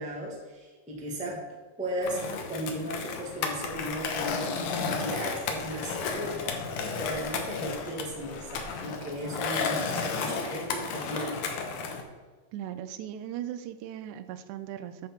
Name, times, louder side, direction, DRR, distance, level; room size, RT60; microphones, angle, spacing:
voice 1, 0.0-1.4 1.8-2.2 2.5-6.5 6.9-11.4, equal, 5° right, -3 dB, 0.9 m, -36 dB
Skateboard, 2.0-12.0, left 4 dB, 70° left, 1.9 m, -33 dB
voice 2, 12.5-15.1, right 11 dB, 80° right, 10 dB, 1.8 m, -38 dB
11.0 x 6.5 x 4.4 m, 1.4 s
omnidirectional pair, 4.0 m